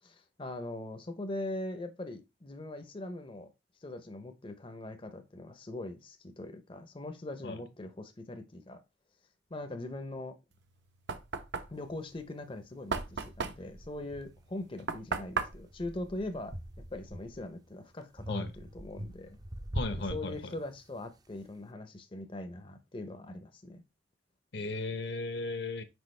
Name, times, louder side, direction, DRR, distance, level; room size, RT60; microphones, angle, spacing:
voice 1, 0.0-3.5 3.8-8.8 9.5-10.4 11.7-16.6 16.9-19.4 19.9-23.8, left 1 dB, 30° left, 0.6 m, -41 dB
Knock, 10.5-17.0, right 4 dB, 70° right, 0.7 m, -38 dB
sound 1, 12.1-12.2 12.9-14.8 15.3-17.6 18.2-21.0, right 1 dB, 20° right, 0.5 m, -43 dB
voice 2, 19.7-20.5 24.5-25.8, left 2 dB, 60° left, 0.8 m, -36 dB
6.2 x 4.8 x 3.2 m
head